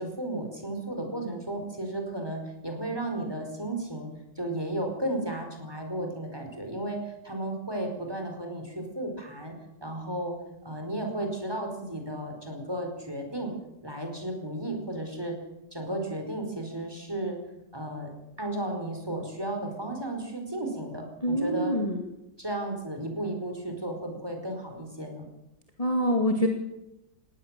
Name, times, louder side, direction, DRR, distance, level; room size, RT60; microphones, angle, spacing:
voice 1, 0.0-4.1 4.3-9.5 9.8-10.3 10.6-13.5 13.8-15.3 15.7-17.4 17.7-18.1 18.4-21.8 22.4-25.3, right 1 dB, 10° right, 3 dB, 4.9 m, -34 dB
voice 2, 21.2-22.0 25.8-26.5, equal, 20° left, 3 dB, 2.2 m, -25 dB
20.0 x 17.5 x 7.6 m, 0.90 s
omnidirectional pair, 2.0 m